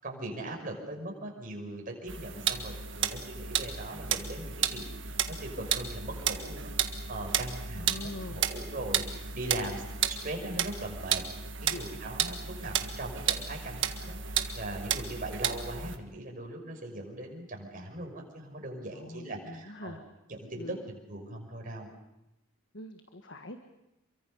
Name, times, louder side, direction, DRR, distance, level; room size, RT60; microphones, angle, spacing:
voice 1, 0.0-6.7 7.1-11.2 11.6-20.0 20.3-21.9, right 1 dB, 40° right, 1 dB, 5.9 m, -40 dB
sound 1, 2.1-16.0, right 8 dB, 60° right, 1.7 m, -33 dB
voice 2, 7.8-8.5 11.7-11.9 18.9-20.0 20.6-20.8 22.7-23.6, left 2 dB, 55° left, 6 dB, 1.5 m, -43 dB
28.5 x 24.0 x 5.5 m, 0.91 s
head